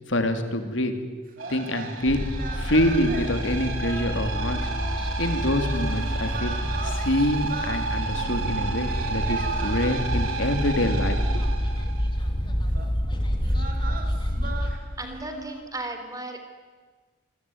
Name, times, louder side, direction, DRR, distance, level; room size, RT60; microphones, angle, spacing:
voice 1, 0.1-0.9 1.5-2.2 2.5-4.7 5.2-6.6 6.8-11.4, left 1 dB, 70° left, 7 dB, 3.1 m, -26 dB
sound 1, 1.3-11.7 12.7-12.9 13.4-15.6, right 2 dB, 45° right, 4.0 m, -40 dB
sound 2, 1.4-12.2, right 5 dB, 85° right, 4.4 m, -33 dB
sound 3, 2.1-14.7, equal, 25° left, 2.8 m, -28 dB
voice 2, 15.0-16.4, right 2 dB, 15° right, 6 dB, 3.4 m, -35 dB
27.0 x 22.0 x 9.5 m, 1.4 s
head